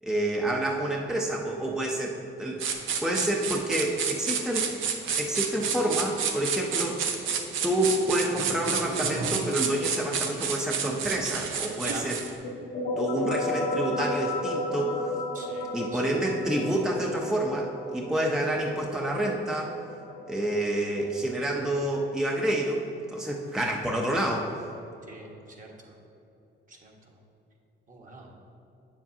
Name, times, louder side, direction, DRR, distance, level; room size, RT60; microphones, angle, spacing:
voice 1, 0.0-4.7 5.2-7.2 7.6-12.2 13.0-15.1 15.7-19.7 20.3-24.5, right 1 dB, 5° right, 0 dB, 0.6 m, -28 dB
sound 1, 2.6-12.3, right 6 dB, 85° right, 0.7 m, -30 dB
sound 2, 12.4-21.8, left 1 dB, 75° left, 1.3 m, -34 dB
voice 2, 15.3-16.2 25.1-25.9 26.7-26.9 27.9-28.3, right 3 dB, 40° right, -1 dB, 1.4 m, -44 dB
8.5 x 7.3 x 2.8 m, 2.8 s
cardioid pair, 90°, 20 cm